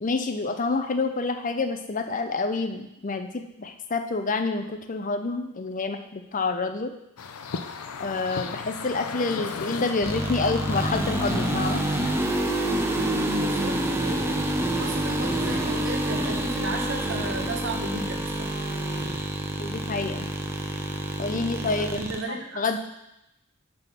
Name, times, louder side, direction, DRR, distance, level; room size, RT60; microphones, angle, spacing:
voice 1, 0.0-6.9 8.0-11.8 19.6-20.3 21.2-22.0 22.3-22.8, left 3 dB, 35° left, 7 dB, 0.6 m, -28 dB
sound 1, 7.2-12.2, left 5 dB, 80° left, 0.6 m, -35 dB
sound 2, 10.0-22.2, right 1 dB, 10° right, 0.6 m, -27 dB
voice 2, 13.3-14.3 14.8-18.5 21.6-22.8, right 2 dB, 55° right, 1 dB, 1.2 m, -34 dB
9.0 x 3.7 x 5.9 m, 0.88 s
head